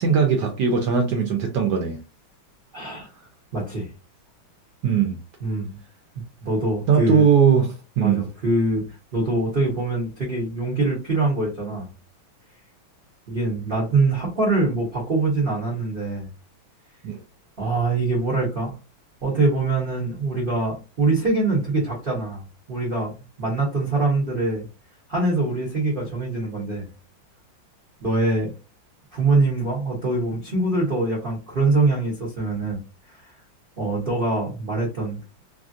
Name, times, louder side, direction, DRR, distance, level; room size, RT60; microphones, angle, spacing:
voice 1, 0.0-2.0 4.8-5.2 6.9-7.7 8.0-8.2 17.0-17.2, right 6 dB, 70° right, 3 dB, 1.0 m, -19 dB
voice 2, 2.7-3.1 3.5-3.9 5.4-5.8 6.4-7.3 8.0-11.9 13.3-16.3 17.6-18.7 19.2-23.1 23.4-24.7 25.1-26.9 28.0-28.5 29.1-32.8 33.1-33.3 33.8-35.2, right 2 dB, 50° right, -3 dB, 0.6 m, -24 dB
3.3 x 2.4 x 2.5 m, 0.30 s
omnidirectional pair, 2.3 m